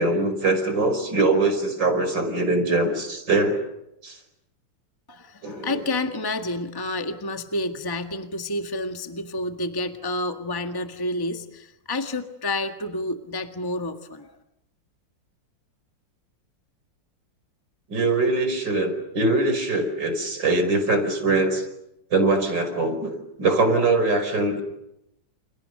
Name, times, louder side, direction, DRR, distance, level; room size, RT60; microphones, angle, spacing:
voice 1, 0.0-3.6 4.0-4.2 5.4-5.8 17.9-21.6 22.1-23.1 23.4-24.6, right 2 dB, 70° right, 6 dB, 5.9 m, -22 dB
voice 2, 5.1-14.3, left 2 dB, 10° left, 6 dB, 1.6 m, -29 dB
29.5 x 29.5 x 6.7 m, 0.85 s
omnidirectional pair, 2.1 m